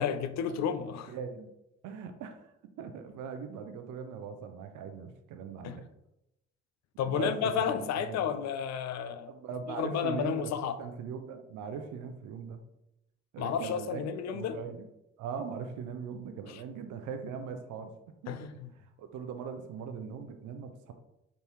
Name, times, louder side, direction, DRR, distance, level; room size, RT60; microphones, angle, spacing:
voice 1, 0.0-1.1 5.6-5.8 7.0-9.3 9.7-10.8 13.4-14.6 16.5-16.6 18.3-18.7, left 8 dB, 55° left, 0.5 m, -32 dB
voice 2, 1.1-1.5 1.8-2.5 2.8-5.9 7.0-8.3 9.3-12.6 13.3-14.9 15.2-17.9 18.2-18.4 19.0-20.9, right 6 dB, 65° right, 0.7 m, -40 dB
3.9 x 3.5 x 3.1 m
hypercardioid pair, 45°, 33 cm